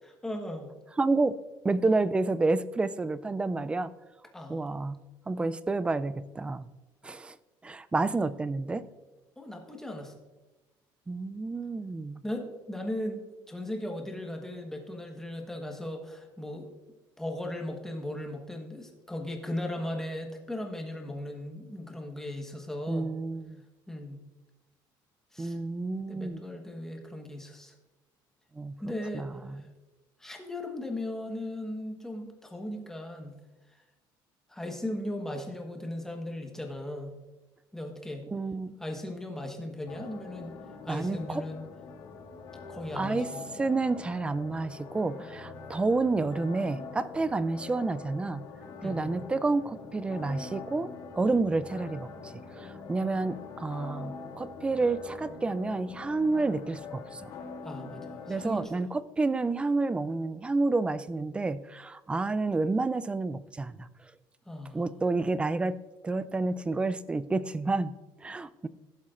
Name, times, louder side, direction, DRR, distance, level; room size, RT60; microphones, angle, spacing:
voice 1, 0.2-0.7 4.3-4.6 9.4-10.1 12.2-16.7 17.2-23.2 23.9-24.2 25.3-25.6 26.1-27.7 28.8-29.3 29.5-29.7 30.2-33.4 34.5-37.1 37.7-38.3 38.8-40.5 40.8-41.6 42.7-43.4 48.8-49.2 57.6-58.8 64.5-65.0, left 1 dB, 5° left, 2 dB, 1.2 m, -37 dB
voice 2, 1.0-1.3 1.6-3.9 4.5-5.0 5.3-6.7 7.0-7.4 7.6-8.8 11.1-12.2 22.9-23.6 25.4-26.4 28.6-28.8 29.1-29.6 38.3-38.7 40.9-41.4 43.0-43.3 43.6-48.4 48.8-57.3 58.3-63.9 64.7-65.8 66.0-67.9 68.2-68.7, right 3 dB, 10° right, 16 dB, 0.3 m, -29 dB
sound 1, 39.9-58.7, left 4 dB, 50° left, 1.6 m, -44 dB
16.0 x 7.4 x 2.5 m, 1.1 s
cardioid pair, 145°, 9 cm